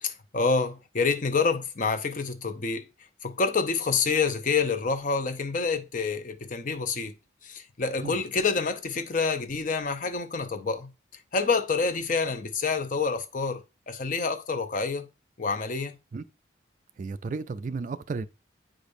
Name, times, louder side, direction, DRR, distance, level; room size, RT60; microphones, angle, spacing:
voice 1, 0.0-2.8 3.2-7.1 7.4-10.9 11.3-13.6 13.9-15.0 15.4-15.9, left 4 dB, 45° left, 0.6 m, -27 dB
voice 2, 17.0-18.3, right 4 dB, 40° right, 0.3 m, -33 dB
8.8 x 5.0 x 2.6 m
head